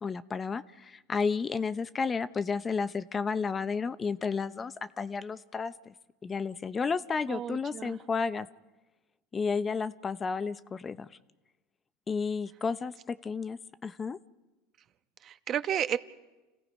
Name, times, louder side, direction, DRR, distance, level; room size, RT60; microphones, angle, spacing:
voice 1, 0.0-5.9 6.2-8.5 9.3-11.1 12.1-14.2, left 5 dB, 25° left, 14 dB, 0.7 m, -32 dB
voice 2, 7.3-8.0 15.2-16.0, right 9 dB, 45° right, 11 dB, 1.1 m, -32 dB
29.5 x 17.0 x 5.3 m, 1.1 s
supercardioid pair, 100°, 0 cm